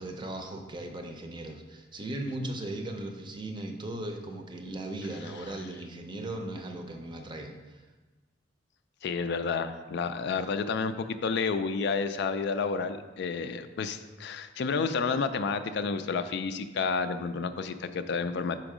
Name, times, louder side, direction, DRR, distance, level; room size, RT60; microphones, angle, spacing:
voice 1, 0.0-7.8, right 1 dB, 25° right, 4 dB, 0.6 m, -37 dB
voice 2, 9.0-18.6, left 5 dB, 60° left, 10 dB, 0.4 m, -30 dB
6.1 x 4.5 x 4.9 m, 1.2 s
head